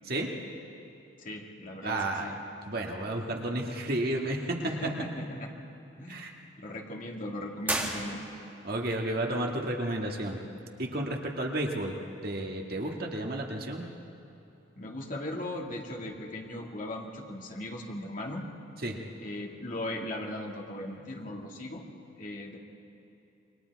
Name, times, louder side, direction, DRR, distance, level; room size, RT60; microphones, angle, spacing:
voice 1, 0.1-0.4 1.8-2.4 2.7-4.9 6.1-6.3 8.6-10.5 10.8-12.0 12.2-13.9 18.8-19.0, right 1 dB, 50° right, 1 dB, 1.9 m, -32 dB
voice 2, 1.2-2.3 4.6-5.5 6.0-8.2 14.8-18.4 19.2-21.8 22.2-22.6, left 1 dB, 40° left, 0 dB, 2.2 m, -38 dB
sound 1, 7.6-8.7, right 1 dB, 10° right, 1.9 m, -33 dB
28.0 x 23.0 x 4.7 m, 3.0 s
head